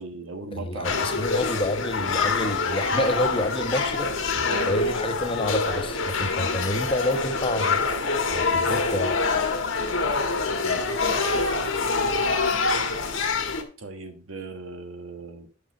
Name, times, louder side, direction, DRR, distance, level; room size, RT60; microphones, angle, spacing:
voice 1, 0.0-1.1 4.5-4.9 10.6-10.9 13.8-15.5, right 3 dB, 90° right, 7 dB, 1.3 m, -38 dB
voice 2, 0.5-4.1 4.7-7.8 8.3-9.2, left 1 dB, 25° left, 7 dB, 1.0 m, -28 dB
sound 1, 0.8-13.6, left 4 dB, 75° left, 1.4 m, -25 dB
9.1 x 6.4 x 4.0 m, 0.36 s
head